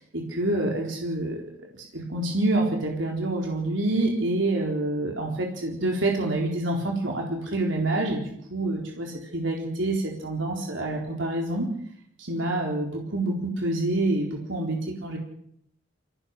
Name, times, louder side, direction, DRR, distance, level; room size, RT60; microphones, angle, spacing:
voice 1, 0.0-1.4 1.8-11.7 12.2-15.2, right 2 dB, 75° right, 0 dB, 4.2 m, -27 dB
25.0 x 18.0 x 6.7 m, 0.69 s
head